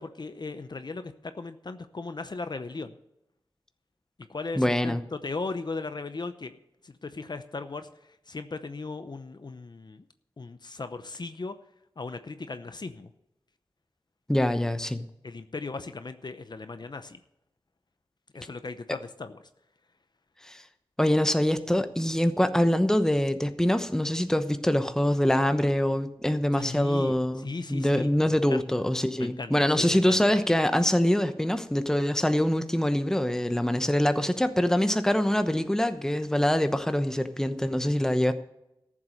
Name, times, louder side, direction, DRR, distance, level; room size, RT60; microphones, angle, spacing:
voice 1, 0.0-2.9 4.3-6.6 6.8-10.0 10.4-11.5 12.0-13.1 15.2-17.2 18.3-19.4 26.6-28.6 29.2-30.2, left 3 dB, 55° left, 10 dB, 0.7 m, -37 dB
voice 2, 4.6-5.0 14.3-15.0 20.5-20.6 21.0-38.3, left 1 dB, 5° left, 9 dB, 1.0 m, -24 dB
14.0 x 7.5 x 6.5 m, 0.87 s
wide cardioid pair, 65°, 9 cm